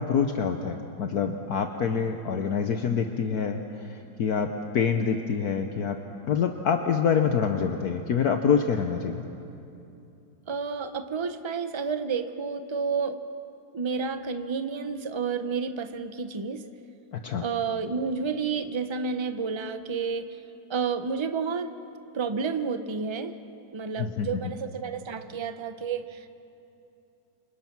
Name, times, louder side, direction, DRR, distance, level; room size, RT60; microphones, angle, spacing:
voice 1, 0.0-4.5 4.7-6.0 6.3-9.2 17.1-17.4 24.0-24.4, left 6 dB, 60° left, 5 dB, 1.4 m, -26 dB
voice 2, 10.5-13.2 13.7-16.6 17.4-20.4 20.7-21.8 22.1-23.3 23.7-26.3, right 5 dB, 30° right, 9 dB, 0.5 m, -30 dB
28.0 x 25.5 x 6.0 m, 2.8 s
omnidirectional pair, 1.9 m